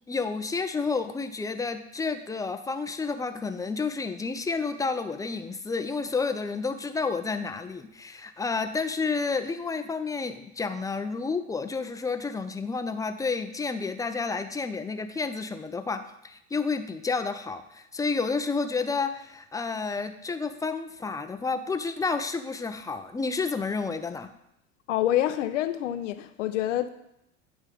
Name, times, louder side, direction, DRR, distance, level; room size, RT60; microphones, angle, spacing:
voice 1, 0.1-24.3, left 4 dB, 10° left, 8 dB, 0.5 m, -30 dB
voice 2, 24.9-26.9, left 12 dB, 70° left, 11 dB, 0.6 m, -27 dB
9.6 x 3.6 x 5.1 m, 0.81 s
hypercardioid pair, 80°, 38 cm